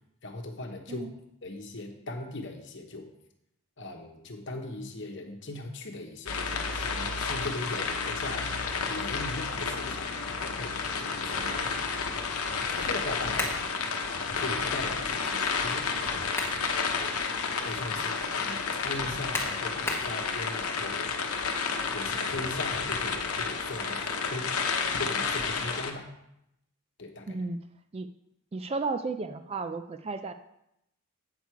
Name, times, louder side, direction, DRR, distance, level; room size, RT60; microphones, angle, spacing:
voice 1, 0.2-1.1 1.4-3.1 3.8-8.5 8.9-13.5 14.3-17.2 17.4-21.1 21.9-24.5 25.0-26.1 27.0-27.4, left 2 dB, 55° left, 4 dB, 1.1 m, -39 dB
sound 1, 6.3-25.9, left 5 dB, 75° left, 0.9 m, -31 dB
sound 2, 13.4-13.7 16.0-16.6 17.1-17.2 19.3-20.1, left 2 dB, 10° left, 1.1 m, -33 dB
voice 2, 27.3-27.6 27.9-28.1 28.5-30.3, right 3 dB, 25° right, 9 dB, 0.3 m, -33 dB
8.2 x 6.3 x 4.6 m, 0.81 s
head